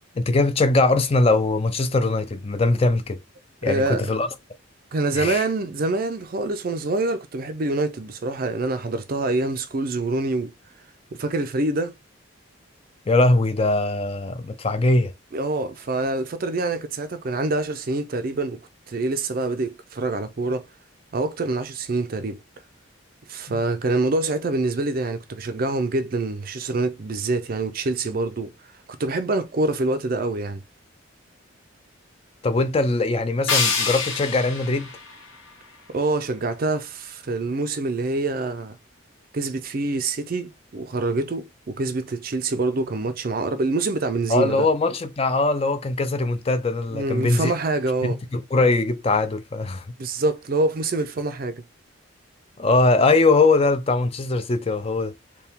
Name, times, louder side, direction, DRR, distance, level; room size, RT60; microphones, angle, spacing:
voice 1, 0.2-3.2 3.6-4.3 5.2-5.4 13.1-15.1 23.5-23.6 32.4-34.9 44.3-47.5 48.0-49.8 52.6-55.1, left 3 dB, 30° left, 0.4 m, -21 dB
voice 2, 3.6-4.1 4.9-10.5 11.1-11.9 15.3-18.6 18.9-20.6 21.1-22.4 23.3-28.5 28.9-30.6 35.9-38.8 39.3-44.7 46.9-48.2 50.0-51.6, right 2 dB, 45° right, 0.4 m, -25 dB
sound 1, 33.5-36.5, left 5 dB, 75° left, 1.2 m, -27 dB
4.5 x 2.3 x 3.5 m
head